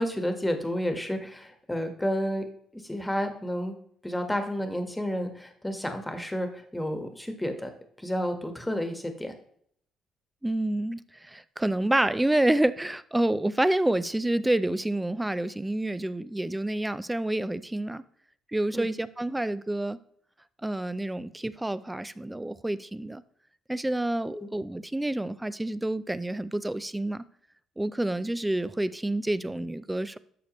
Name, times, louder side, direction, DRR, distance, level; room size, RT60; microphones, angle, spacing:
voice 1, 0.0-2.4 2.7-3.8 4.0-7.7 8.0-9.3 18.7-18.9 24.3-24.5, equal, 10° left, 6 dB, 1.4 m, -31 dB
voice 2, 10.4-18.0 18.5-20.0 20.6-23.2 23.7-27.2 27.8-30.2, right 1 dB, 10° right, 16 dB, 0.5 m, -28 dB
11.5 x 6.7 x 3.1 m, 0.66 s
cardioid pair, 85°, 0 cm